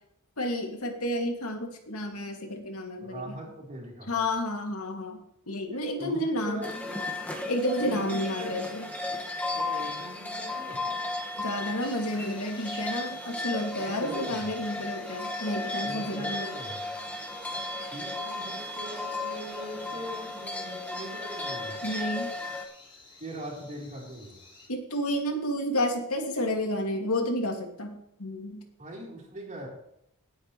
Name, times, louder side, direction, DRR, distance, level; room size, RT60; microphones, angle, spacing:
voice 1, 0.4-3.5 4.1-6.6 7.5-8.9 11.4-16.5 21.8-22.3 24.7-28.6, left 1 dB, 90° left, 2 dB, 2.6 m, -31 dB
voice 2, 3.0-4.1 5.7-6.9 7.8-8.5 9.5-11.0 13.8-14.5 15.8-16.8 17.9-21.8 23.2-24.4 28.8-29.7, equal, 35° right, -2 dB, 4.0 m, -41 dB
sound 1, 6.6-22.6, left 2 dB, 5° left, 1.8 m, -35 dB
sound 2, 11.8-24.7, left 2 dB, 25° left, 5.5 m, -52 dB
17.5 x 8.9 x 3.3 m, 0.77 s
head